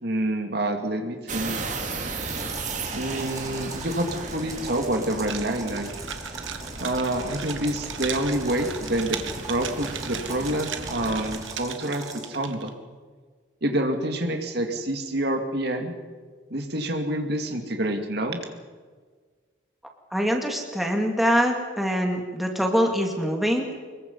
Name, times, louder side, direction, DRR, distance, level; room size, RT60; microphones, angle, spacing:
voice 1, 0.0-1.7 2.9-6.0 6.8-9.2 9.5-12.7 13.6-15.9 16.5-18.4, right 1 dB, 55° right, 5 dB, 2.3 m, -27 dB
sound 1, 1.3-11.4, right 3 dB, 40° right, 2.8 m, -35 dB
sound 2, 2.2-12.4, right 3 dB, 20° right, 3.0 m, -41 dB
sound 3, 5.2-12.7, right 9 dB, 75° right, 1.8 m, -37 dB
voice 2, 20.1-23.7, equal, ahead, 1 dB, 2.6 m, -24 dB
26.0 x 22.0 x 5.5 m, 1.5 s
head